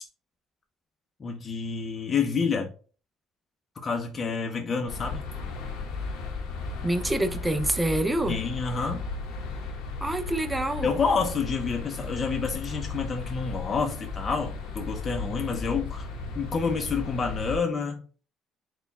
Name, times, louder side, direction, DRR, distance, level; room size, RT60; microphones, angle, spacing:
voice 1, 1.2-2.7 3.8-5.2 8.3-9.0 10.8-16.1 16.3-18.0, left 5 dB, 35° left, 0.6 m, -28 dB
sound 1, 4.9-17.6, left 3 dB, 85° left, 1.0 m, -35 dB
voice 2, 6.8-8.4 10.0-10.9, right 1 dB, 10° right, 0.5 m, -26 dB
4.2 x 2.3 x 4.0 m
cardioid pair, 110°, 0 cm